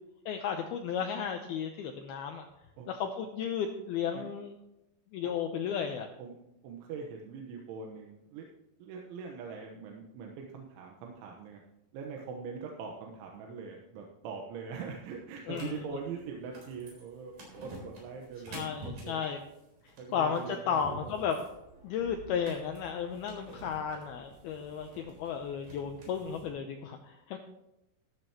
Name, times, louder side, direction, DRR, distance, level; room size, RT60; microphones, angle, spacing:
voice 1, 0.3-2.5 2.9-4.5 5.1-6.1 15.5-15.9 18.5-19.4 19.8-21.4 21.8-27.4, left 7 dB, 90° left, 5 dB, 2.2 m, -34 dB
voice 2, 6.6-8.5 8.8-11.6 11.9-17.3 17.6-18.7 19.0-19.2 20.0-21.3 25.0-25.1, right 5 dB, 85° right, 1 dB, 3.5 m, -42 dB
sound 1, 15.5-26.5, right 1 dB, 50° right, 5.1 m, -49 dB
14.0 x 12.5 x 3.0 m, 0.91 s
omnidirectional pair, 5.5 m